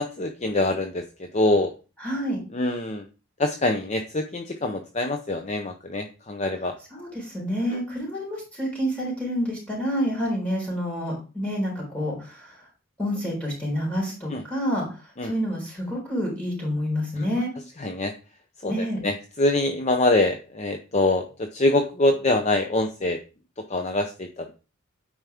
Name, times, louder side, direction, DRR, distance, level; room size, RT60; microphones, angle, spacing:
voice 1, 0.0-1.7 2.5-3.0 3.4-6.7 14.3-14.4 15.2-15.3 17.2-17.3 17.8-18.1 18.6-21.2 21.5-23.2 23.7-24.5, left 2 dB, 35° left, 6 dB, 0.6 m, -24 dB
voice 2, 2.0-2.4 6.9-12.6 13.0-14.8 15.2-17.5 18.7-19.0, equal, 5° left, -4 dB, 4.0 m, -28 dB
9.1 x 4.8 x 3.4 m, 0.33 s
head